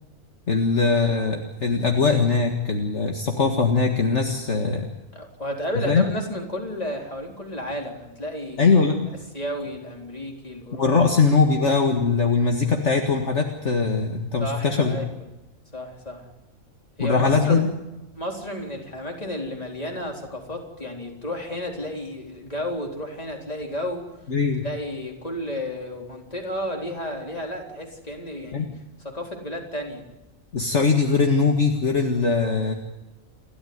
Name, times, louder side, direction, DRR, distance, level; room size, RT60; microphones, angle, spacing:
voice 1, 0.5-4.8 5.9-6.0 8.6-9.1 10.8-15.0 17.0-17.7 24.3-24.6 28.5-28.7 30.5-32.7, left 4 dB, 55° left, 3 dB, 2.1 m, -21 dB
voice 2, 5.1-8.9 9.3-10.9 11.2-11.4 14.4-15.2 15.7-16.2 17.0-17.6 18.2-24.0 24.6-28.7 29.0-30.0, left 1 dB, 25° left, 1 dB, 4.0 m, -32 dB
29.5 x 13.0 x 9.6 m, 0.98 s
omnidirectional pair, 1.4 m